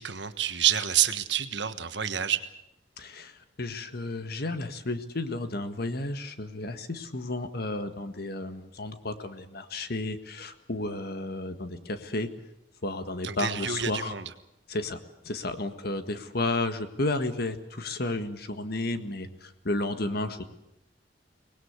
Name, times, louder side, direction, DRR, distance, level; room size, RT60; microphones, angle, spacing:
voice 1, 0.0-2.4 13.2-14.3, right 10 dB, 65° right, 10 dB, 1.4 m, -28 dB
voice 2, 3.0-12.3 12.8-14.1 14.7-15.0 15.2-20.4, left 2 dB, 55° left, 9 dB, 1.7 m, -32 dB
24.5 x 19.5 x 8.2 m, 0.84 s
head